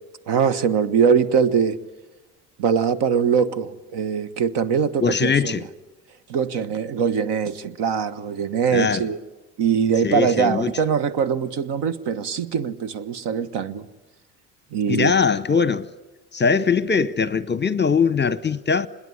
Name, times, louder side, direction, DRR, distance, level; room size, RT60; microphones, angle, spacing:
voice 1, 0.3-1.8 2.6-5.7 6.3-9.2 9.6-13.9 14.7-15.1, right 6 dB, 55° right, 1.4 m, -22 dB
voice 2, 5.0-5.6 8.7-9.0 10.0-10.7 14.9-15.9 16.3-18.9, left 5 dB, 20° left, 0.8 m, -21 dB
25.5 x 21.5 x 9.9 m
hypercardioid pair, 55°, 48 cm